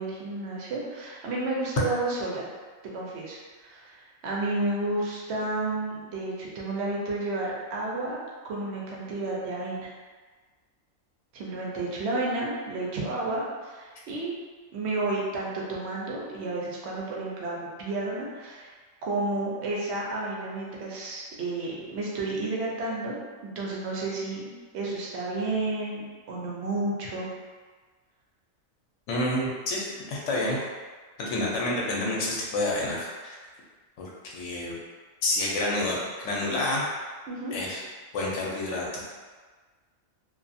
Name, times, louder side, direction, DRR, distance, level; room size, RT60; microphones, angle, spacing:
voice 1, 0.0-2.5 2.9-9.9 11.3-14.3 14.7-18.7 19.0-23.1 23.4-27.3 37.3-37.6, right 2 dB, 65° right, -4 dB, 0.8 m, -31 dB
voice 2, 29.1-30.6 31.2-33.4 34.0-34.8 35.2-36.9 37.5-37.8 38.1-39.0, left 1 dB, 70° left, -4 dB, 0.9 m, -29 dB
2.4 x 2.3 x 2.6 m, 1.4 s
omnidirectional pair, 1.4 m